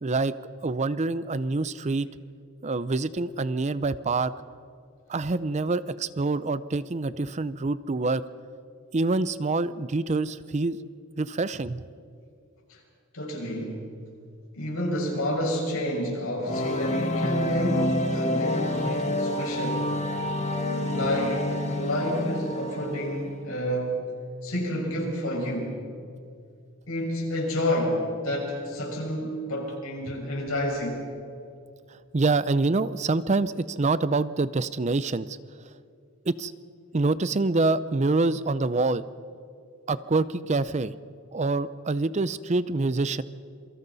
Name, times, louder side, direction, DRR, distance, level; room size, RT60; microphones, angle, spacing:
voice 1, 0.0-0.3 0.6-2.1 2.6-4.3 5.1-8.2 8.9-10.8 11.2-11.8 32.1-35.4 36.3-36.5 36.9-39.0 39.9-40.9 41.3-43.2, right 3 dB, 35° right, 16 dB, 0.5 m, -26 dB
voice 2, 13.1-13.8 14.5-19.9 20.7-24.0 24.4-25.8 26.9-31.0, equal, 90° left, -1 dB, 5.9 m, -29 dB
sound 1, 16.4-23.3, left 1 dB, 35° left, 1.8 m, -28 dB
27.5 x 23.5 x 4.1 m, 2.4 s
head